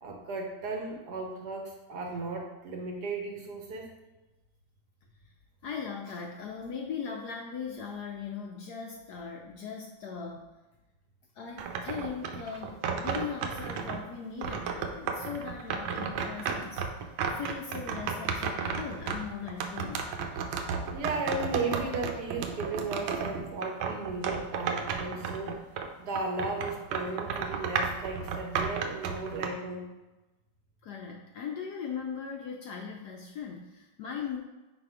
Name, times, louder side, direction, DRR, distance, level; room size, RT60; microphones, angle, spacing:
voice 1, 0.0-3.9 20.9-25.6 26.0-29.8, right 3 dB, 60° right, 1 dB, 1.2 m, -35 dB
voice 2, 5.6-10.5 11.3-20.0 20.9-21.0 30.8-34.4, left 6 dB, 75° left, 2 dB, 0.9 m, -39 dB
sound 1, 11.6-14.0 14.4-25.9 26.2-29.5, right 6 dB, 85° right, 1.4 m, -33 dB
5.0 x 4.1 x 4.8 m, 1.1 s
omnidirectional pair, 2.2 m